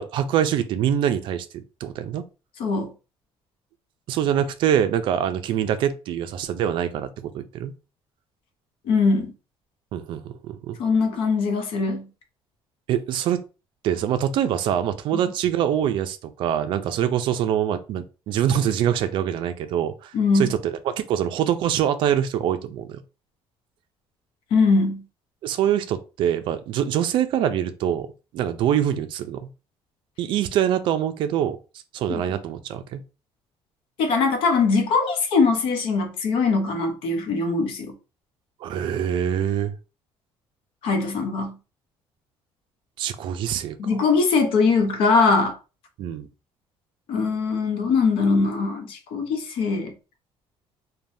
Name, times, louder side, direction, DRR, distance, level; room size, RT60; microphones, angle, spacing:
voice 1, 0.0-2.2 4.1-7.7 9.9-10.8 12.9-13.4 13.8-23.0 25.4-28.1 28.3-29.4 30.2-31.6 31.9-33.0 38.6-39.8 43.0-43.8 46.0-46.3, right 10 dB, 55° right, 0.4 m, -24 dB
voice 2, 2.6-2.9 8.8-9.3 10.8-12.1 15.1-15.2 20.1-20.5 24.5-25.0 32.1-32.2 34.0-37.9 40.8-41.6 43.8-45.6 47.1-49.9, left 4 dB, 65° left, 0.7 m, -21 dB
3.2 x 2.2 x 2.6 m
cardioid pair, 175°, 10 cm